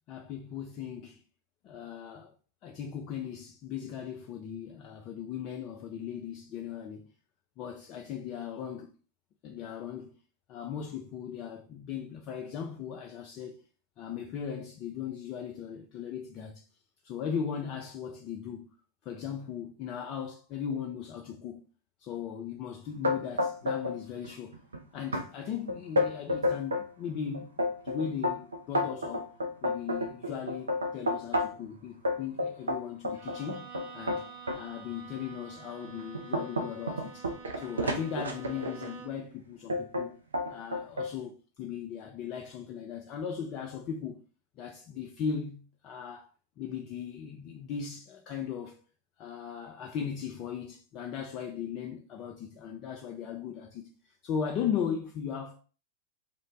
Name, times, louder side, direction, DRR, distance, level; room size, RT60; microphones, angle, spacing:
voice 1, 0.1-1.2 1.6-2.3 2.6-7.1 7.6-8.9 9.4-10.2 10.5-13.6 14.0-16.6 17.0-18.7 19.0-21.6 22.0-24.6 24.9-27.5 27.8-29.3 29.6-33.7 33.9-34.3 34.5-37.3 37.6-40.2 40.5-44.2 44.6-46.3 46.6-48.8 49.2-55.6, left 7 dB, 35° left, 0.3 m, -38 dB
sound 1, 23.0-24.0 24.2-24.8 25.1-25.2 25.7-26.9 27.3-31.7 32.0-34.6 35.2-35.4 35.8-38.9 39.7-40.1 40.3-41.1, left 1 dB, 75° right, 0.4 m, -30 dB
Bowed string instrument, 33.1-39.3, right 6 dB, 55° right, 0.9 m, -48 dB
2.4 x 2.1 x 2.9 m
figure-of-eight pair, 90°, 0 cm